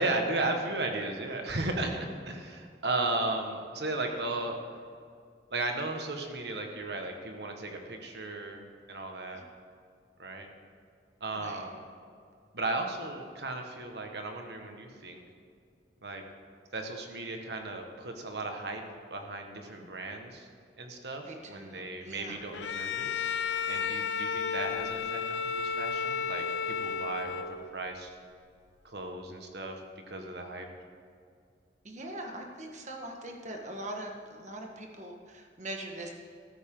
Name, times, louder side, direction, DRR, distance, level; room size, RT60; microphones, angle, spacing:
voice 1, 0.0-4.6 5.5-8.6 8.9-9.4 10.2-10.5 11.2-11.8 12.5-15.2 16.0-16.2 16.7-18.8 19.1-20.5 20.8-23.1 23.7-28.1 28.8-29.8 30.1-30.7, right 2 dB, 70° right, 3 dB, 1.6 m, -35 dB
voice 2, 11.3-11.6 21.2-22.5 31.8-36.1, right 1 dB, 40° right, 2 dB, 1.6 m, -42 dB
Bowed string instrument, 22.5-27.8, left 6 dB, 85° left, 0.5 m, -33 dB
14.0 x 13.5 x 3.9 m, 2.2 s
head